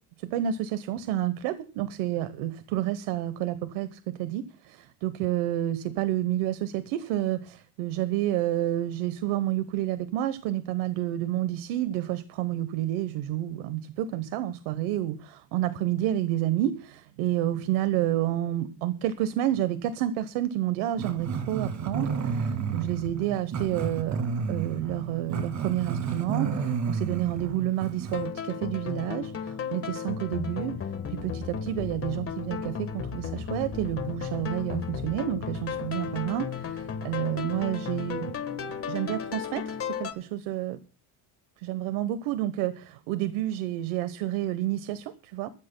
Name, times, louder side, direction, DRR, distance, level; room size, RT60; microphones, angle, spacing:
voice 1, 0.2-30.7 31.1-38.3 38.9-40.8 41.6-45.5, right 13 dB, 70° right, 1.1 m, -29 dB
Growling, 21.0-28.3, right 6 dB, 35° right, 2.1 m, -31 dB
sound 1, 28.1-40.1, left 7 dB, 25° left, 1.4 m, -34 dB
23.0 x 13.5 x 2.2 m
cardioid pair, 135°, 49 cm